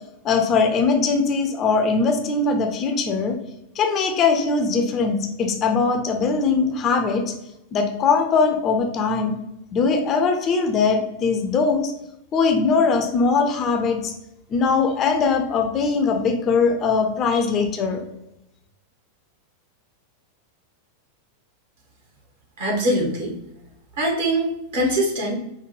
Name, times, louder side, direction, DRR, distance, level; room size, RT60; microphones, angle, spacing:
voice 1, 0.2-3.4 3.7-7.2 7.7-9.3 9.7-11.9 12.3-14.1 14.5-18.0, left 4 dB, 30° left, 5 dB, 0.5 m, -21 dB
voice 2, 22.6-23.3 24.0-25.3, right 1 dB, 60° right, -1 dB, 1.3 m, -22 dB
5.1 x 2.2 x 3.1 m, 0.86 s
figure-of-eight pair, 90°, 0 cm